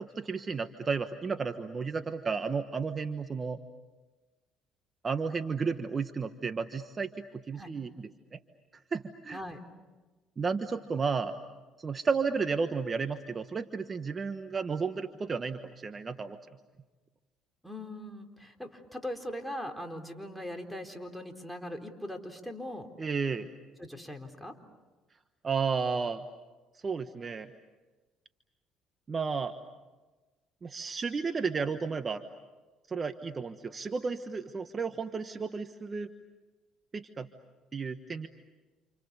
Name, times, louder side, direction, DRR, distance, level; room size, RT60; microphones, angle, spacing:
voice 1, 0.0-3.6 5.0-7.1 7.5-7.9 8.3-8.4 8.9-9.4 10.4-11.3 11.8-16.4 23.0-23.5 25.4-26.2 26.8-27.5 29.1-29.5 30.6-32.2 32.9-36.1 36.9-37.3 37.7-38.3, right 5 dB, 35° right, 9 dB, 1.3 m, -32 dB
voice 2, 17.6-22.9 23.8-24.6, left 1 dB, ahead, 6 dB, 4.1 m, -40 dB
29.5 x 29.0 x 7.0 m, 1.2 s
supercardioid pair, 70°, 0 cm